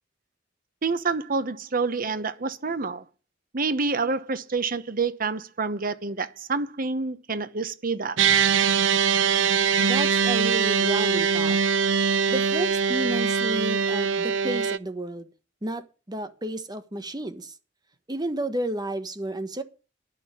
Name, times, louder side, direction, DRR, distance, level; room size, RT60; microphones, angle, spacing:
voice 1, 0.8-3.0 3.5-8.2, right 4 dB, 50° right, 1.0 m, -28 dB
sound 1, 8.2-14.8, right 6 dB, 75° right, 0.6 m, -22 dB
voice 2, 9.8-11.6 12.3-15.3 15.6-17.5 18.1-19.6, right 1 dB, 20° right, 1.4 m, -31 dB
11.5 x 6.8 x 8.2 m
head